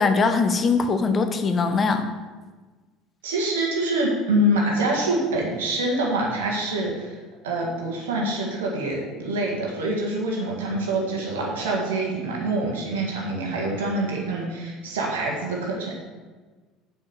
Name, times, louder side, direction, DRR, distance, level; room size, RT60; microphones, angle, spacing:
voice 1, 0.0-2.0, left 4 dB, 30° left, 8 dB, 1.0 m, -21 dB
voice 2, 3.2-7.2 7.4-15.9, right 1 dB, 70° right, -2 dB, 1.8 m, -25 dB
7.7 x 5.5 x 7.0 m, 1.4 s
figure-of-eight pair, 65°, 0 cm